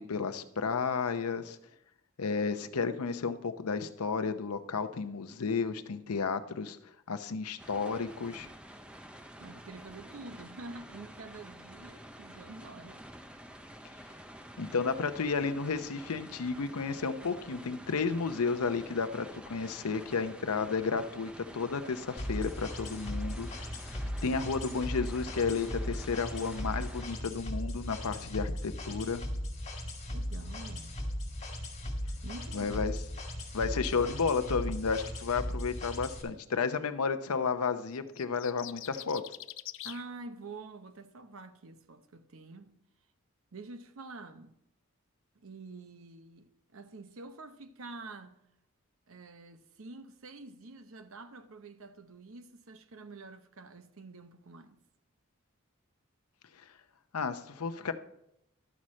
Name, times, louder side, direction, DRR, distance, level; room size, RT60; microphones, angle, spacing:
voice 1, 0.0-1.6 2.2-6.8 7.1-8.5 14.6-23.5 23.8-29.2 32.5-32.9 33.5-39.2 57.1-57.9, left 5 dB, 90° left, 0.7 m, -32 dB
sound 1, 7.6-27.0, equal, 5° right, 0.4 m, -49 dB
voice 2, 9.4-13.0 30.1-31.0 32.2-32.9 39.8-42.8 43.5-44.5 45.3-48.5 49.1-54.8, right 3 dB, 70° right, 0.7 m, -47 dB
sound 2, 22.2-36.2, equal, 30° left, 1.9 m, -37 dB
sound 3, 37.9-40.0, left 15 dB, 60° left, 0.3 m, -44 dB
12.0 x 6.3 x 4.2 m
head